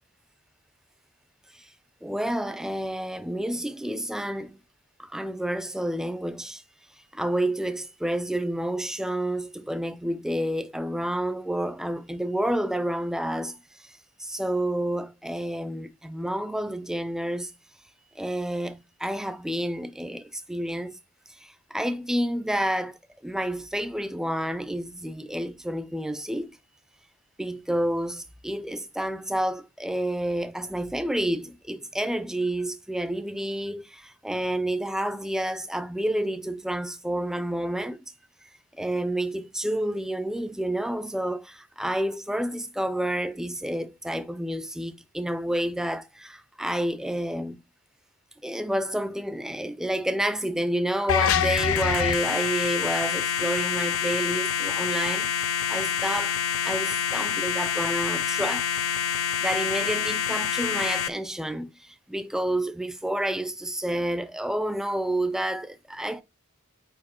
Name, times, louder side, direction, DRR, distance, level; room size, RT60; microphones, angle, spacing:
voice 1, 2.0-4.6 5.0-6.6 7.1-13.6 13.8-13.9 14.2-17.5 18.2-21.0 21.4-23.0 23.2-26.6 27.4-38.0 38.8-47.6 48.4-56.4 56.6-58.8 59.4-66.2, right 1 dB, ahead, 0.4 m, -29 dB
sound 1, 51.1-61.1, left 8 dB, 65° left, 0.5 m, -26 dB
8.7 x 4.7 x 2.9 m
head